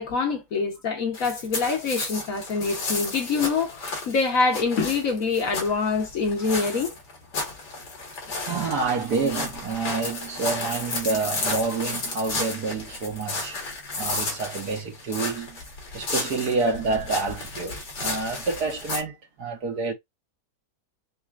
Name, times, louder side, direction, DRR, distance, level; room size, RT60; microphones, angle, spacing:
voice 1, 0.0-6.9, left 4 dB, 55° left, 1.4 m, -25 dB
sound 1, 1.1-19.0, left 3 dB, 80° left, 2.3 m, -33 dB
voice 2, 8.5-13.6 13.9-15.6 15.9-19.9, right 4 dB, 65° right, 1.8 m, -28 dB
5.5 x 3.1 x 2.4 m
omnidirectional pair, 1.8 m